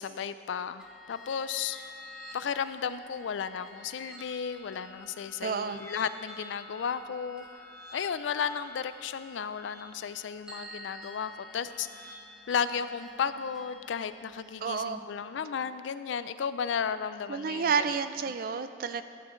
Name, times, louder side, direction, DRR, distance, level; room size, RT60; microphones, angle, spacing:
voice 1, 0.0-1.8 2.3-7.4 7.9-12.0 12.5-17.7, left 7 dB, 70° left, 13 dB, 0.4 m, -34 dB
sound 1, 0.8-14.9, left 1 dB, 5° right, 1.1 m, -49 dB
voice 2, 5.4-5.8 14.6-15.1 17.3-19.0, right 6 dB, 50° right, 11 dB, 0.4 m, -30 dB
12.0 x 9.6 x 3.1 m, 2.4 s
head